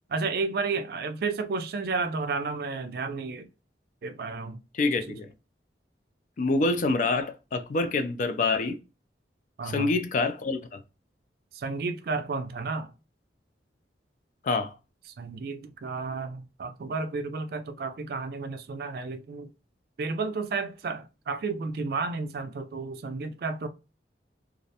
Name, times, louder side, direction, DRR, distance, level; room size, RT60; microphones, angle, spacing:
voice 1, 0.1-3.5 4.0-4.6 5.1-5.2 9.6-9.9 11.5-12.9 15.2-19.5 20.0-23.7, right 4 dB, 55° right, 0.3 m, -32 dB
voice 2, 4.7-5.3 6.4-8.8 9.6-10.8 14.4-14.7, left 3 dB, 45° left, 0.3 m, -26 dB
2.4 x 2.1 x 2.7 m
head